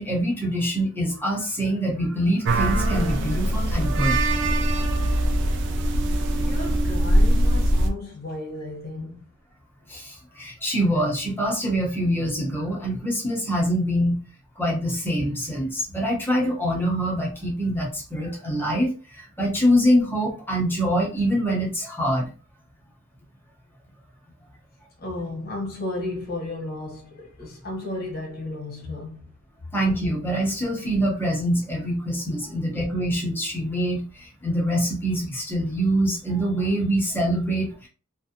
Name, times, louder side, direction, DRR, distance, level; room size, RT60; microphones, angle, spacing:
voice 1, 0.0-4.2 9.9-14.2 14.6-22.3 29.7-37.9, equal, 10° left, 0.7 m, -24 dB
sound 1, 2.4-7.9, right 1 dB, 55° right, 0.4 m, -22 dB
voice 2, 6.4-9.3 25.0-29.3, left 2 dB, 45° left, 0.9 m, -34 dB
2.5 x 2.1 x 2.8 m
head